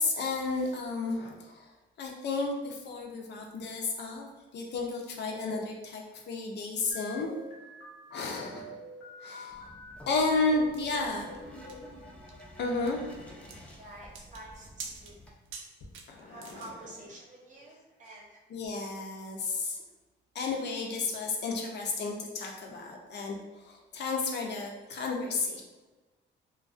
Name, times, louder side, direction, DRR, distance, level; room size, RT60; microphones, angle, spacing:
voice 1, 0.0-1.7 2.0-4.3 4.5-7.3 8.1-8.8 9.2-9.7 10.1-11.3 12.6-13.6 16.1-16.7 18.5-19.8 20.3-25.6, left 3 dB, 60° left, 1 dB, 0.5 m, -32 dB
sound 1, 6.9-9.9 10.4-12.0, left 2 dB, 85° left, 0.9 m, -46 dB
sound 2, 9.5-15.3, equal, 5° left, 0.5 m, -51 dB
sound 3, 10.7-17.0, right 5 dB, 80° right, 0.4 m, -47 dB
voice 2, 13.8-15.2 16.2-18.4, right 1 dB, 40° right, -2 dB, 0.8 m, -48 dB
2.3 x 2.2 x 2.4 m, 1.2 s
cardioid pair, 90°, 20 cm